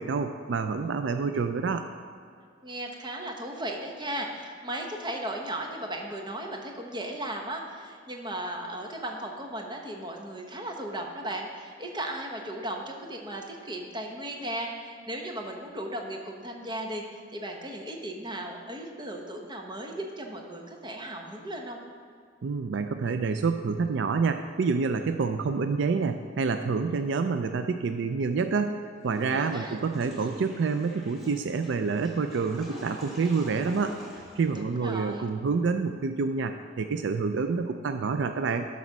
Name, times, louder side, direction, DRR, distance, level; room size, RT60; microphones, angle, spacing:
voice 1, 0.0-1.8 22.4-28.8 29.0-34.0 34.4-38.7, right 4 dB, 70° right, 8 dB, 0.4 m, -28 dB
voice 2, 2.6-21.8 29.3-29.8 34.5-35.3, right 1 dB, 25° right, 1 dB, 1.1 m, -36 dB
Water / Toilet flush, 29.0-35.2, left 1 dB, ahead, 2.3 m, -46 dB
12.0 x 4.2 x 6.1 m, 2.2 s
head